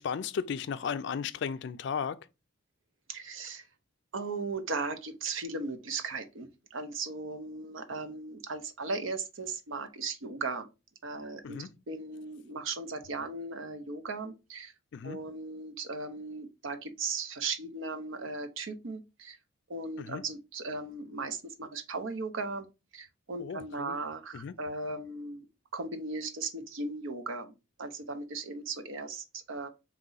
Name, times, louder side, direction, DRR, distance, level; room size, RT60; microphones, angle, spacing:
voice 1, 0.0-2.3 11.4-11.7 14.9-15.2 20.0-20.2 23.4-24.0 24.3-24.6, left 6 dB, 60° left, 0.3 m, -35 dB
voice 2, 3.1-3.7 4.1-10.7 11.0-14.7 15.0-19.4 19.7-22.7 22.9-25.5 25.7-27.5 27.8-29.7, right 3 dB, 75° right, 0.7 m, -37 dB
4.0 x 3.0 x 3.8 m
head